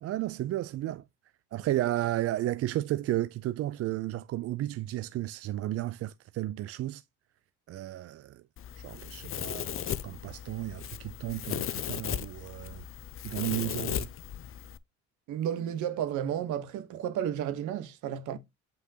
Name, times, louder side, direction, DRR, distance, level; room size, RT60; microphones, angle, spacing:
voice 1, 0.0-1.0 1.5-7.0 7.7-8.4 8.8-12.8 13.2-14.1, right 15 dB, 50° right, 0.4 m, -33 dB
Domestic sounds home sounds, 8.6-14.8, left 10 dB, 45° left, 0.7 m, -36 dB
voice 2, 15.3-18.4, right 10 dB, 70° right, 1.2 m, -32 dB
7.9 x 5.5 x 2.8 m
supercardioid pair, 70°, 31 cm